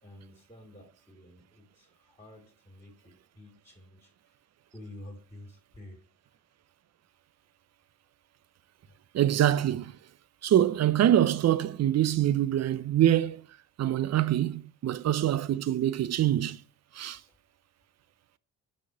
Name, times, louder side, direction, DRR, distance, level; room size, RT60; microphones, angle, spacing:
voice 1, 0.0-4.4 4.7-6.0 6.3-6.4, left 1 dB, 15° left, 2.5 m, -50 dB
voice 2, 9.1-9.9 10.4-13.4 13.8-16.6 16.9-17.2, right 11 dB, 45° right, 0.5 m, -25 dB
5.9 x 4.3 x 4.5 m
supercardioid pair, 50°, 38 cm